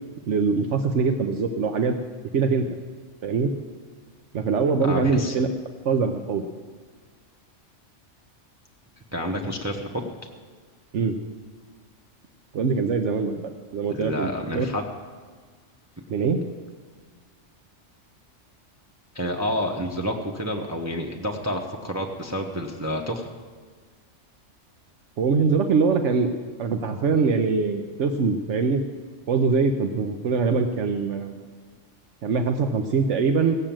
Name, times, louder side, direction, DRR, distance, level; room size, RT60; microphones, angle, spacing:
voice 1, 0.3-1.9 2.3-2.7 3.2-3.5 4.3-5.5 5.8-6.4 10.9-11.2 12.5-14.7 16.1-16.4 25.2-26.3 26.6-28.8 29.3-31.4 32.2-33.6, right 5 dB, 75° right, 6 dB, 1.1 m, -23 dB
voice 2, 4.8-5.3 9.1-10.1 13.9-14.8 19.1-23.3, equal, 15° right, 1 dB, 0.9 m, -29 dB
16.5 x 7.6 x 8.7 m, 1.5 s
omnidirectional pair, 1.2 m